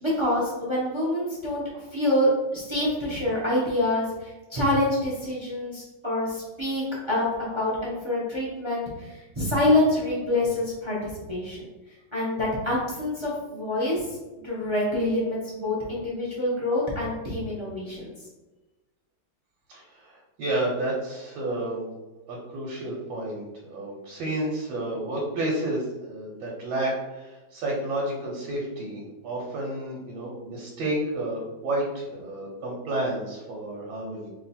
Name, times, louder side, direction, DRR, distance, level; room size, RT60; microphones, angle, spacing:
voice 1, 0.0-11.7 12.1-14.1 14.4-18.1, left 1 dB, 30° right, -6 dB, 0.5 m, -26 dB
voice 2, 19.7-21.9 22.3-34.3, right 1 dB, 85° right, -3 dB, 1.6 m, -31 dB
3.1 x 2.9 x 4.1 m, 1.1 s
omnidirectional pair, 2.1 m